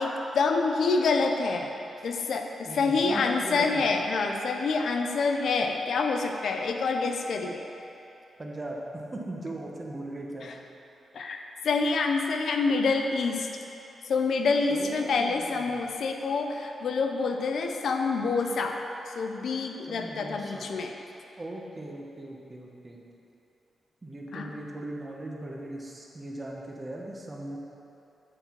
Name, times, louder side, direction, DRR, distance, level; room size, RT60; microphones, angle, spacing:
voice 1, 0.0-1.7 2.0-7.6 11.1-13.5 14.1-18.8 19.2-20.9 24.3-24.5, left 4 dB, 60° left, 4 dB, 0.5 m, -27 dB
voice 2, 2.7-3.9 8.4-10.5 14.7-15.8 19.9-20.7 21.4-23.0 24.0-27.6, right 1 dB, 20° right, -1 dB, 0.8 m, -39 dB
8.2 x 5.5 x 4.4 m, 2.9 s
wide cardioid pair, 180°, 0 cm